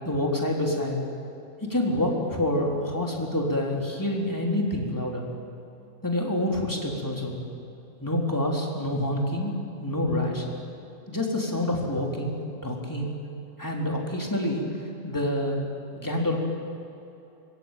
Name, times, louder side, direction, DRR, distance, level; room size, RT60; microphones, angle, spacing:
voice 1, 0.1-1.0 1.6-5.3 6.0-7.4 8.0-9.5 9.8-10.4 11.1-12.4 12.6-13.1 13.6-14.6 15.0-15.6 16.0-16.4, left 1 dB, 15° left, -1 dB, 3.9 m, -27 dB
25.5 x 22.5 x 9.3 m, 2.8 s
omnidirectional pair, 1.4 m